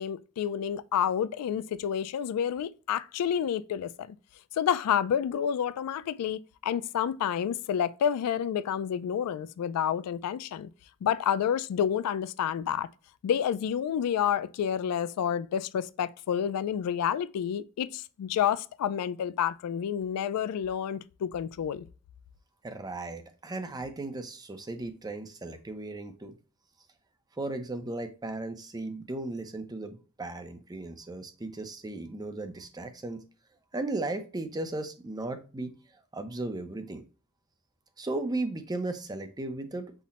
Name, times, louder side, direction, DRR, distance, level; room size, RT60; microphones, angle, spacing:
voice 1, 0.0-4.2 4.6-10.7 11.0-12.9 13.2-21.9, left 8 dB, 90° left, 0.3 m, -29 dB
voice 2, 22.6-26.4 27.4-33.2 33.7-35.7 36.1-37.0 38.0-39.9, right 2 dB, 15° right, 0.5 m, -36 dB
5.7 x 2.1 x 4.1 m
head